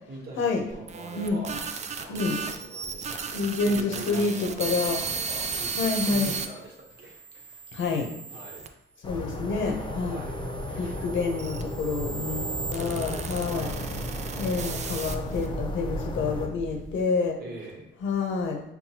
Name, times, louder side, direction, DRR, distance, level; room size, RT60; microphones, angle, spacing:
voice 1, 0.1-1.6 2.0-7.2 8.3-8.6 9.1-10.4 12.7-13.9 17.4-17.9, right 1 dB, 55° right, -2 dB, 1.2 m, -42 dB
sound 1, 0.7-6.5 7.1-8.7 9.5-15.5, right 5 dB, 35° right, 0.4 m, -35 dB
voice 2, 3.3-5.0 5.8-6.3 7.7-8.1 9.0-10.2 10.8-13.7 14.4-17.4 18.0-18.6, left 4 dB, 75° left, 3 dB, 0.7 m, -28 dB
sound 2, 9.0-16.5, left 1 dB, 25° left, 0.5 m, -35 dB
sound 3, 11.5-17.0, right 1 dB, ahead, 0.9 m, -42 dB
5.6 x 2.2 x 2.8 m, 0.82 s
cardioid pair, 90°, 20 cm